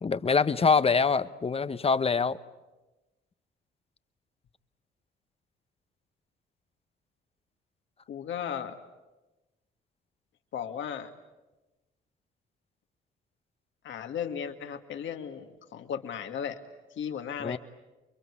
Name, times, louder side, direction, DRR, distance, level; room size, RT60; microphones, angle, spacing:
voice 1, 0.0-2.4 17.4-17.6, left 5 dB, 30° left, 1.0 m, -24 dB
voice 2, 8.1-8.8 10.5-11.1 13.8-16.6 17.0-17.6, left 8 dB, 70° left, 2.3 m, -35 dB
29.0 x 23.5 x 8.6 m
cardioid pair, 90°, 20 cm